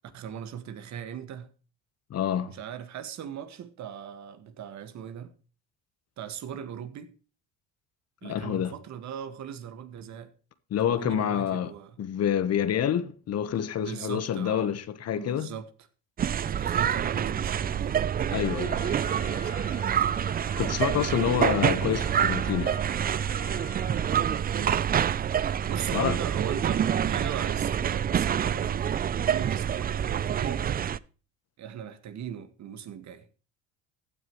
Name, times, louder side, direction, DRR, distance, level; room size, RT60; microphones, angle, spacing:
voice 1, 0.0-1.5 2.5-5.3 6.2-7.1 8.2-10.3 10.8-12.0 13.8-14.8 15.2-15.7 16.5-17.9 19.0-20.0 24.5-24.9 25.7-28.9 29.3-30.7 31.6-33.3, right 9 dB, 55° right, 1.7 m, -39 dB
voice 2, 2.1-2.5 8.2-8.7 10.7-11.7 12.0-15.5 18.3-18.9 20.6-22.8 25.9-26.2, left 9 dB, 50° left, 1.2 m, -27 dB
sound 1, 16.2-31.0, right 9 dB, 25° right, 0.4 m, -27 dB
Trumpet, 18.3-24.4, left 7 dB, 20° left, 2.1 m, -46 dB
15.5 x 9.2 x 3.1 m
supercardioid pair, 85°, 33 cm